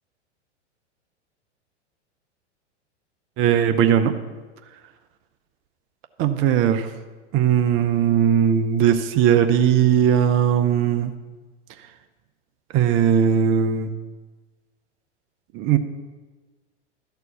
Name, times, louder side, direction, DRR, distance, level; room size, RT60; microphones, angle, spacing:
voice 1, 3.4-4.2 6.2-6.9 7.3-11.1 12.7-13.9 15.5-15.8, right 9 dB, 35° right, 8 dB, 0.8 m, -19 dB
12.5 x 4.5 x 8.2 m, 1.3 s
hypercardioid pair, 105°, 35 cm